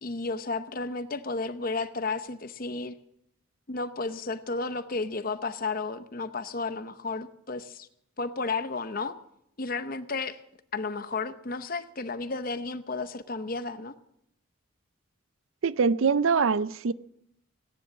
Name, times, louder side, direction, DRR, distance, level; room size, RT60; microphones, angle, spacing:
voice 1, 0.0-3.0 3.7-7.9 8.2-9.2 9.6-10.4 10.7-13.9, left 3 dB, 40° left, 0.8 m, -33 dB
voice 2, 15.6-16.9, right 5 dB, 70° right, 0.5 m, -23 dB
18.0 x 10.0 x 7.2 m
head